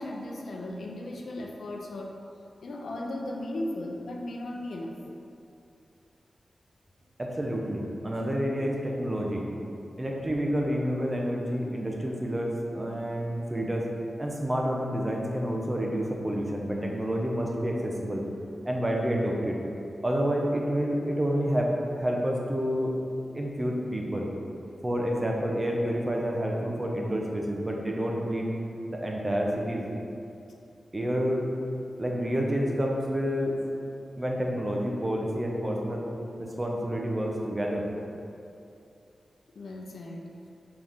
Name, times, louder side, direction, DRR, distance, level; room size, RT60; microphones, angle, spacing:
voice 1, 0.0-2.2 2.6-5.0 9.9-10.0 39.5-40.3, left 1 dB, 85° left, 0 dB, 0.6 m, -36 dB
voice 2, 7.2-9.4 10.0-13.9 14.2-18.2 18.6-19.6 20.0-22.9 23.3-24.3 24.8-28.6 28.9-29.9 30.9-31.5 32.0-33.6 34.2-36.1 36.4-37.9, equal, 25° right, -1 dB, 0.9 m, -29 dB
4.9 x 3.6 x 5.6 m, 2.7 s
wide cardioid pair, 70°, 0 cm